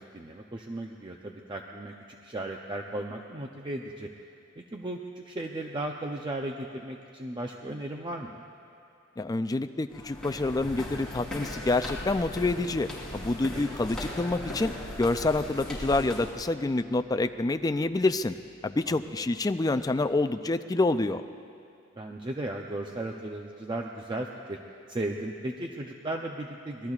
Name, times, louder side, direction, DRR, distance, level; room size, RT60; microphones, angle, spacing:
voice 1, 0.0-4.1 4.6-8.4 13.5-13.7 18.9-19.0 22.0-24.6 24.9-26.9, right 1 dB, 25° right, 1 dB, 0.6 m, -36 dB
voice 2, 9.2-14.7 15.0-18.3 18.6-21.2, left 2 dB, 20° left, 9 dB, 0.4 m, -27 dB
sound 1, 9.9-16.4, left 1 dB, 5° left, 3.5 m, -38 dB
Bass guitar, 10.6-20.3, left 1 dB, 45° right, 3.5 m, -54 dB
25.5 x 20.0 x 2.4 m, 2.7 s
head